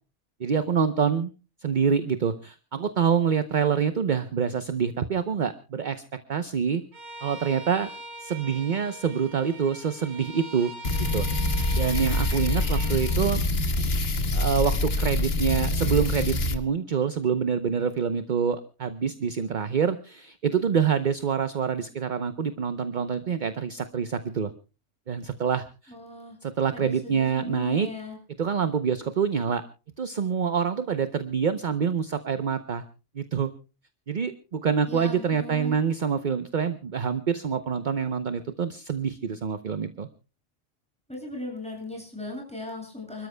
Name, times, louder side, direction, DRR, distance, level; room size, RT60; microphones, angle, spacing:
voice 1, 0.4-1.3 1.6-6.8 7.2-7.9 8.2-10.7 11.1-11.3 11.8-13.4 14.3-24.5 25.1-25.9 26.4-27.9 28.4-29.6 30.0-32.8 33.1-33.5 34.1-40.1, right 7 dB, 45° right, 11 dB, 0.9 m, -26 dB
Bowed string instrument, 6.9-13.2, right 2 dB, 65° right, 3.6 m, -42 dB
sound 1, 10.8-16.6, left 2 dB, 55° left, 1.5 m, -25 dB
voice 2, 25.9-26.4 26.7-28.2 34.9-35.7 41.1-43.3, left 1 dB, 5° left, 0 dB, 7.3 m, -38 dB
29.0 x 13.5 x 2.2 m, 0.33 s
omnidirectional pair, 1.2 m